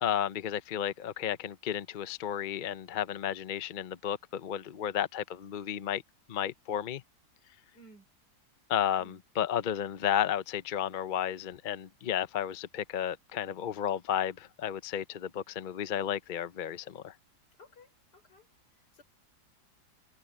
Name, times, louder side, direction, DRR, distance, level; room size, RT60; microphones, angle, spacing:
voice 1, 0.0-6.0 6.3-7.0 8.7-17.1, left 10 dB, 50° left, 0.6 m, -33 dB
voice 2, 7.7-8.1 9.0-9.2 17.6-18.5 18.9-19.0, equal, 90° left, 5.2 m, -56 dB
omnidirectional pair, 1.7 m